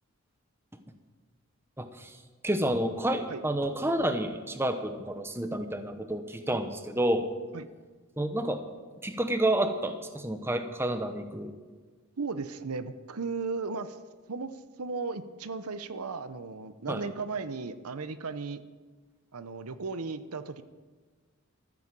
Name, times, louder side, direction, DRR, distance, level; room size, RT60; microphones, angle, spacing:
voice 1, 1.8-2.2 2.4-7.3 8.2-8.6 9.0-11.6 16.9-17.0, right 1 dB, 10° right, 8 dB, 0.8 m, -29 dB
voice 2, 12.2-14.0 14.3-18.6 19.3-20.6, right 4 dB, 85° right, 12 dB, 0.8 m, -36 dB
13.5 x 10.0 x 7.5 m, 1.4 s
head